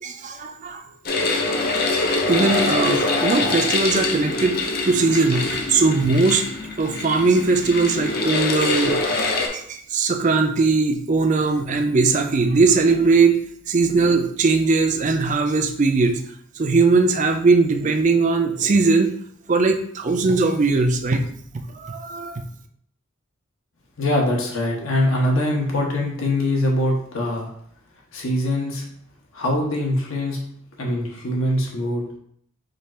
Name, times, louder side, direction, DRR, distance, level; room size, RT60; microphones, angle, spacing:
voice 1, 0.0-0.8 1.3-1.8 2.3-4.6 4.8-6.4 6.8-9.0 9.5-13.4 13.7-16.2 16.6-19.1 19.5-21.2 21.7-22.4, right 3 dB, 35° right, 6 dB, 0.4 m, -19 dB
sound 1, 1.1-9.5, left 3 dB, 45° left, 0.6 m, -24 dB
voice 2, 24.0-27.5 28.1-28.8 29.3-30.4 30.8-32.2, left 1 dB, 75° left, -1 dB, 1.1 m, -23 dB
5.1 x 2.4 x 4.2 m, 0.65 s
head